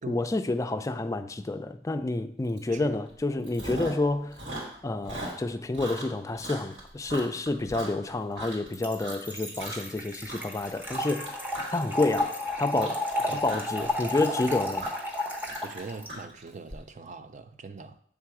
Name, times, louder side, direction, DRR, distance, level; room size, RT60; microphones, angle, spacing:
voice 1, 0.1-4.4 4.8-11.3 11.7-12.3 12.6-13.0 13.3-14.9, left 2 dB, 20° left, 0.4 m, -29 dB
Chewing mastication, 2.6-2.8 3.1-4.1 4.3-8.7 9.0-9.3 9.6-10.0 10.2-16.8, right 1 dB, 85° right, 2.4 m, -39 dB
voice 2, 2.7-3.0 13.3-13.4 15.6-18.0, right 4 dB, 45° right, 0.5 m, -41 dB
Trickle dribble / Fill (with liquid), 8.7-16.1, left 1 dB, 10° right, 0.9 m, -32 dB
sound 1, 11.0-15.8, equal, 65° right, 2.3 m, -50 dB
7.4 x 3.8 x 4.7 m
head